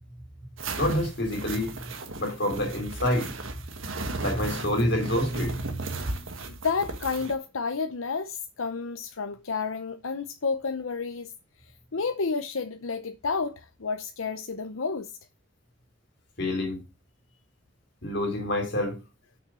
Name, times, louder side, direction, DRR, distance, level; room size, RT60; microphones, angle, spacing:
sound 1, 0.6-7.3, right 3 dB, 75° right, 1.5 m, -36 dB
voice 1, 0.8-1.7 2.2-3.3 4.2-6.3 16.4-16.8 18.0-19.0, left 1 dB, 60° left, 3.7 m, -27 dB
voice 2, 6.5-11.3 11.9-15.1, left 4 dB, 85° left, 0.8 m, -30 dB
6.4 x 6.2 x 6.2 m
head